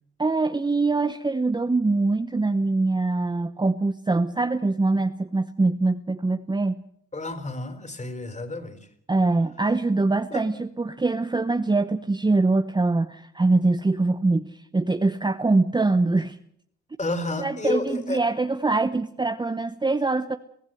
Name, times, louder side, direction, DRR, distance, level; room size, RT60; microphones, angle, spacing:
voice 1, 0.2-6.8 9.1-16.4 17.4-20.4, right 3 dB, 15° right, 9 dB, 0.9 m, -23 dB
voice 2, 7.1-8.8 10.3-10.4 17.0-18.2, left 2 dB, 25° left, 9 dB, 4.0 m, -30 dB
23.5 x 15.5 x 7.9 m, 0.69 s
cardioid pair, 90°, 30 cm